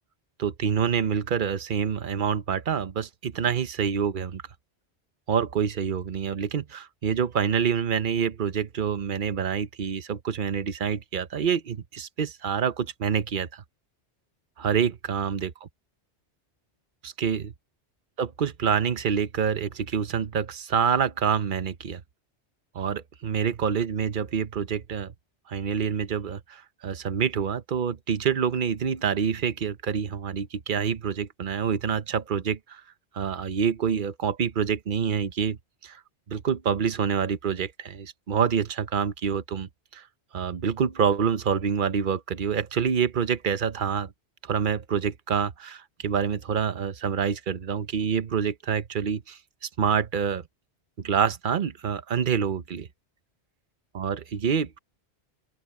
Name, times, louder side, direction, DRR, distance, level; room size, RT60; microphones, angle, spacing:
voice 1, 0.4-4.4 5.3-13.6 14.6-15.7 17.0-17.5 18.2-22.0 22.7-25.1 25.5-32.8 33.1-35.6 35.8-36.0 36.3-40.0 40.3-44.1 44.4-50.4 51.0-52.9 53.9-54.8, right 7 dB, 50° right, 1.0 m, -27 dB
open air
omnidirectional pair, 1.1 m